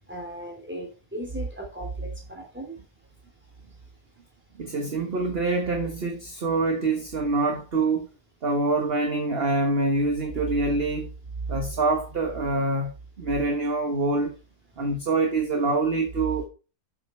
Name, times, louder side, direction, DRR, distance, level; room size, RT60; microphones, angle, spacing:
voice 1, 0.1-2.8, equal, 5° right, 3.3 m, -38 dB
voice 2, 4.6-8.1 8.4-11.1 11.5-12.9 13.2-14.3 14.8-16.4, right 3 dB, 40° right, 1.4 m, -25 dB
8.0 x 7.3 x 4.5 m
omnidirectional pair, 1.7 m